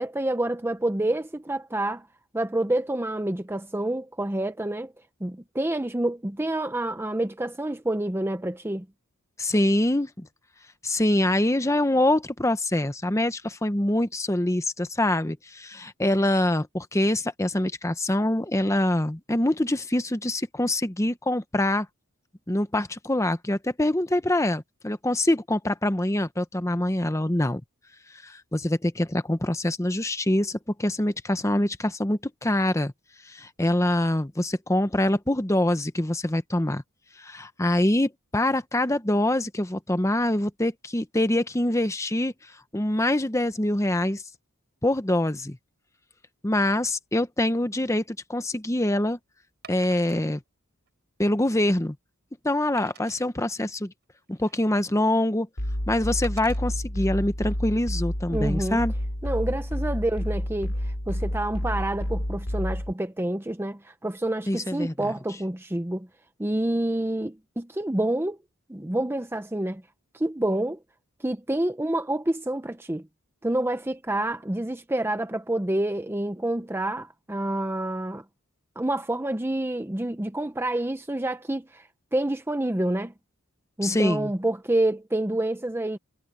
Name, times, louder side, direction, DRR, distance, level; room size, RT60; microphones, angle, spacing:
voice 1, 0.0-2.1 2.3-4.9 5.2-8.9 58.3-58.8 59.2-66.1 66.4-68.4 68.7-69.8 70.1-70.8 71.2-73.0 73.4-78.2 78.8-83.1 83.8-86.0, right 1 dB, 10° right, 0.6 m, -28 dB
voice 2, 9.4-10.3 10.8-21.9 22.5-27.6 28.2-32.9 33.3-36.8 37.2-42.3 42.7-44.2 44.8-45.6 46.4-49.2 49.7-50.4 51.2-52.0 52.4-53.9 54.3-55.5 55.9-58.9 64.5-64.9 83.8-84.3, left 1 dB, 15° left, 0.9 m, -25 dB
Wood, 48.0-48.2 49.6-50.2 50.9-51.0 51.5-51.6 52.8-53.3 54.0-54.8 56.2-56.6 57.3-57.5, right 7 dB, 50° right, 5.6 m, -47 dB
sound 1, 55.6-62.9, equal, 65° left, 3.3 m, -29 dB
head